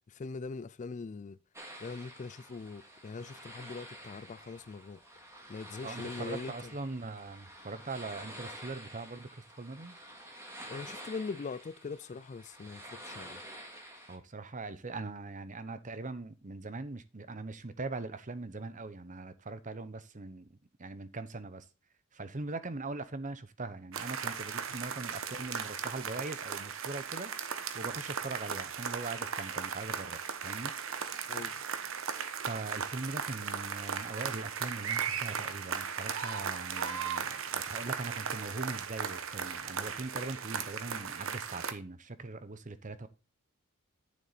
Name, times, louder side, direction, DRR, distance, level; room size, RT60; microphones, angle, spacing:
voice 1, 0.1-1.4 1.8-5.0 5.5-6.7 10.7-13.4 31.3-31.5, left 4 dB, 35° left, 0.3 m, -41 dB
sound 1, 1.5-14.2, right 1 dB, 15° right, 2.1 m, -49 dB
voice 2, 5.8-10.0 14.1-21.6 22.1-30.7 32.4-43.1, right 3 dB, 35° right, 0.9 m, -41 dB
sound 2, 23.9-41.7, right 7 dB, 65° right, 1.0 m, -37 dB
9.6 x 7.1 x 4.1 m
head